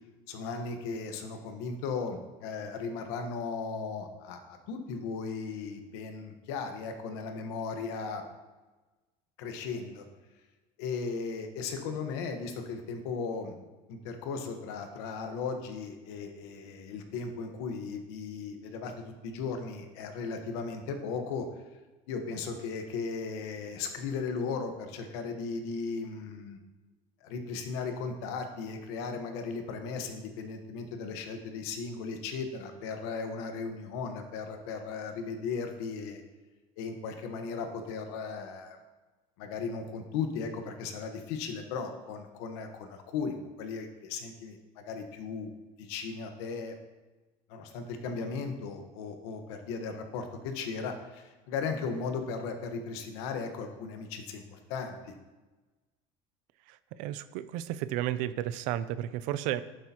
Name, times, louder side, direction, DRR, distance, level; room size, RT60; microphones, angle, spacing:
voice 1, 0.3-8.2 9.4-10.0 10.8-13.5 13.9-21.5 22.1-26.6 27.2-36.2 36.8-38.8 39.4-45.5 45.8-46.7 47.5-55.1, left 5 dB, 85° left, 5 dB, 1.3 m, -36 dB
voice 2, 56.7-59.6, right 12 dB, 65° right, 14 dB, 0.5 m, -33 dB
11.0 x 7.8 x 2.9 m, 1.2 s
cardioid pair, 155°, 14 cm